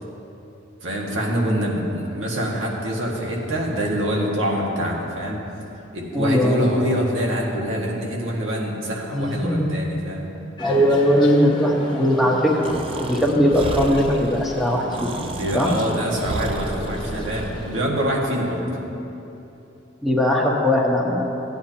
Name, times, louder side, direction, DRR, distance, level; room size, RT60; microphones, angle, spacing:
voice 1, 0.8-5.4 5.9-10.3 13.2-13.4 15.2-18.6, equal, 80° right, -2 dB, 1.8 m, -25 dB
voice 2, 6.1-6.8 9.1-9.7 10.6-12.7 13.0-15.1 15.5-15.7 18.6-19.0 20.0-21.2, equal, ahead, -3 dB, 1.2 m, -19 dB
sound 1, 10.6-17.8, equal, 25° left, 0.9 m, -35 dB
Breathing, 12.6-17.7, right 3 dB, 30° right, 0.3 m, -33 dB
17.0 x 9.3 x 2.9 m, 3.0 s
head